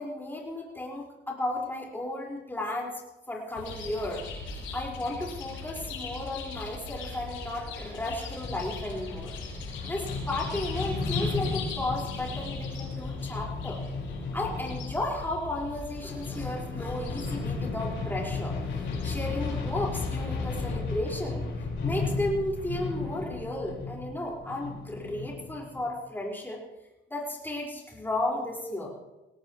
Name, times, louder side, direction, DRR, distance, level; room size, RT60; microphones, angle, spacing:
voice 1, 0.0-3.0 3.3-4.3 4.7-9.4 9.8-13.8 14.3-18.6 19.0-21.5 21.8-26.6 27.1-28.9, left 1 dB, 10° left, -2 dB, 5.0 m, -34 dB
Chirp tweet, 3.6-20.7, left 3 dB, 90° left, 7.1 m, -40 dB
sound 1, 8.4-25.9, left 4 dB, 65° left, 5.1 m, -34 dB
21.0 x 17.5 x 3.2 m, 1.0 s
cardioid pair, 90°, 20 cm